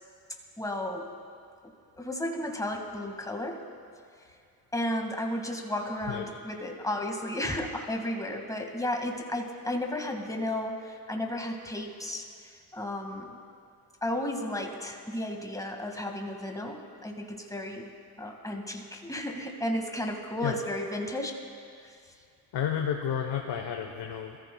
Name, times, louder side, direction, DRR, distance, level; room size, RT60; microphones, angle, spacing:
voice 1, 0.6-1.1 2.0-3.6 4.7-13.3 14.0-17.9 18.2-21.3, left 1 dB, 5° left, 2 dB, 1.9 m, -33 dB
voice 2, 22.5-24.4, left 8 dB, 60° left, 3 dB, 1.1 m, -31 dB
20.5 x 14.5 x 2.3 m, 2.4 s
hypercardioid pair, 45°, 48 cm